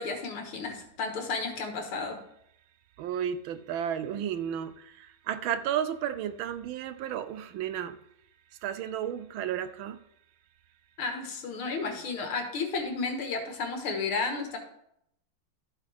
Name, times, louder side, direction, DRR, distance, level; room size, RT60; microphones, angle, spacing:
voice 1, 0.0-2.2 11.0-14.6, left 4 dB, 80° left, 2.4 m, -32 dB
voice 2, 3.0-8.0 8.6-10.0, right 9 dB, 75° right, 1.3 m, -33 dB
12.5 x 8.3 x 3.5 m
omnidirectional pair, 2.3 m